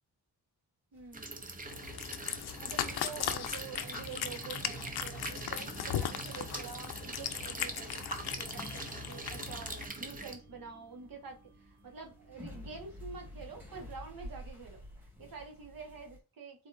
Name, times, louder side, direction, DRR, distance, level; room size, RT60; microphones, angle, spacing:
sound 1, 0.9-16.2, left 1 dB, 5° right, 1.6 m, -53 dB
voice 1, 0.9-1.5 2.6-8.1 8.4-16.7, right 5 dB, 60° right, 2 dB, 1.5 m, -47 dB
sound 2, 1.1-10.4, right 3 dB, 20° right, 0.7 m, -43 dB
Cat, 1.7-9.8, left 9 dB, 75° left, 0.6 m, -38 dB
5.0 x 3.9 x 2.6 m, 0.32 s
wide cardioid pair, 170°, 39 cm